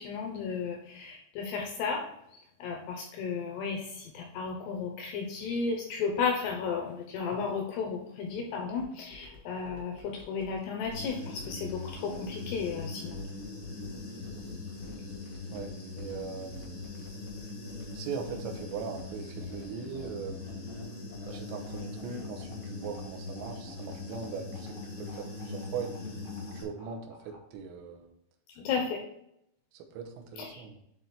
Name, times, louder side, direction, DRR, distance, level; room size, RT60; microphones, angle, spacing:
voice 1, 0.0-2.1 2.3-13.2 28.6-29.0 30.4-30.6, left 5 dB, 80° left, 2 dB, 2.4 m, -34 dB
sound 1, 8.8-27.5, left 4 dB, 45° left, 1.1 m, -53 dB
Human voice / Buzz, 10.9-26.6, left 3 dB, 60° left, 0.9 m, -41 dB
voice 2, 16.0-16.7 17.9-20.4 21.2-24.7 25.0-25.9 26.5-28.1 29.7-30.8, right 6 dB, 80° right, 2 dB, 3.5 m, -40 dB
8.8 x 4.0 x 4.3 m, 0.77 s
omnidirectional pair, 5.9 m